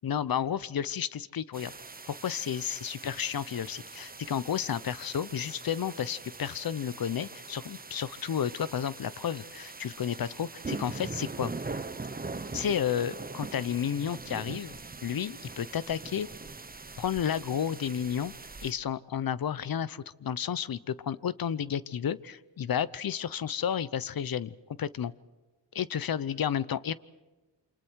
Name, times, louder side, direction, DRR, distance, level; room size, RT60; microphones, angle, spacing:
voice 1, 0.0-1.7 2.1-11.5 12.5-14.7 15.0-16.3 17.0-18.3 18.6-25.1 25.7-26.9, left 8 dB, 55° left, 18 dB, 0.9 m, -32 dB
sound 1, 1.5-18.7, right 3 dB, 20° right, 1.1 m, -42 dB
28.0 x 26.0 x 4.7 m, 1.2 s
cardioid pair, 85°, 43 cm